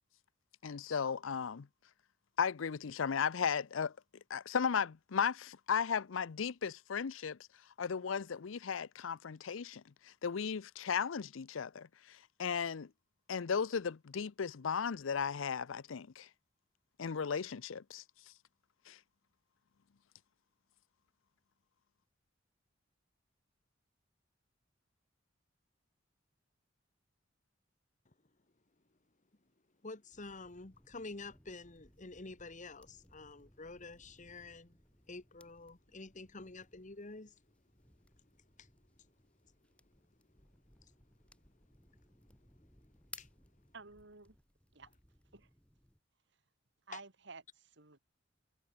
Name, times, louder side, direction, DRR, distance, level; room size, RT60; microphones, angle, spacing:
voice 1, 0.6-1.7 2.4-3.9 4.3-7.4 7.8-12.9 13.3-16.3 17.0-18.0 18.9-19.0, left 6 dB, 85° left, 0.6 m, -36 dB
voice 2, 29.8-34.8 35.1-37.4 38.6-38.7 40.8-40.9 41.3-41.4 42.2-42.5 42.8-42.9 43.2-43.3 46.9-47.0, left 3 dB, 40° left, 1.5 m, -49 dB
sound 1, 30.1-46.0, left 1 dB, 5° left, 3.1 m, -62 dB
voice 3, 43.7-44.4 44.7-44.9 45.3-45.5 46.9-48.0, right 4 dB, 65° right, 2.6 m, -52 dB
head